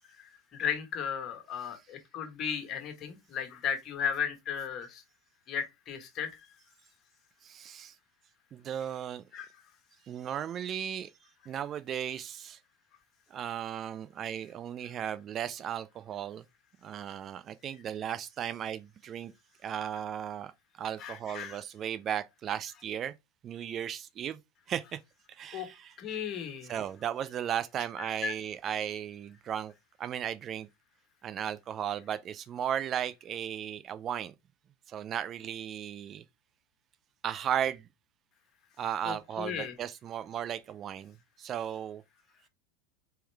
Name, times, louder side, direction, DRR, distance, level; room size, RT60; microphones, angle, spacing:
voice 1, 0.2-5.0 5.5-6.3 9.3-9.5 21.0-21.6 25.5-25.7 26.0-26.7 28.0-28.3 39.0-39.7, left 7 dB, 40° left, 1.4 m, -35 dB
voice 2, 7.4-7.9 8.5-9.2 10.1-11.1 11.5-12.6 13.3-16.4 16.8-19.3 19.6-20.5 20.8-23.1 23.4-24.4 24.7-25.0 25.3-26.0 26.6-29.7 30.0-30.7 31.2-34.3 34.9-36.2 37.2-37.9 38.8-42.0, right 9 dB, 40° right, 0.4 m, -35 dB
4.4 x 3.6 x 3.3 m
hypercardioid pair, 90°, 0 cm